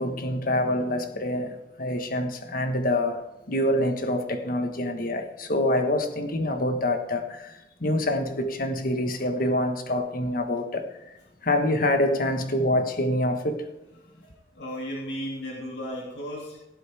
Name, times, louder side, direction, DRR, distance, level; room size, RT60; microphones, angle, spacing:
voice 1, 0.0-3.2 3.5-7.5 7.8-10.8 11.4-13.7, left 1 dB, 55° left, 1.5 m, -26 dB
voice 2, 14.5-16.6, equal, 75° left, 2.9 m, -34 dB
17.0 x 8.3 x 3.6 m
head